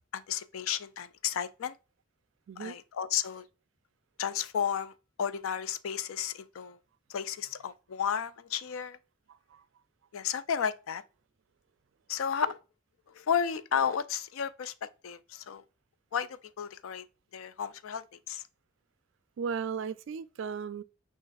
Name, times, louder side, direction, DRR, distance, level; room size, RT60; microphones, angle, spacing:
voice 1, 0.1-1.7 2.6-3.4 4.2-4.9 5.2-6.8 7.1-9.0 10.1-11.0 12.1-12.6 13.1-14.7 15.0-15.6 16.1-17.0 17.3-18.4, left 8 dB, 90° left, 0.4 m, -33 dB
voice 2, 9.3-9.6 19.4-20.8, right 6 dB, 65° right, 0.3 m, -36 dB
6.3 x 2.5 x 2.4 m
head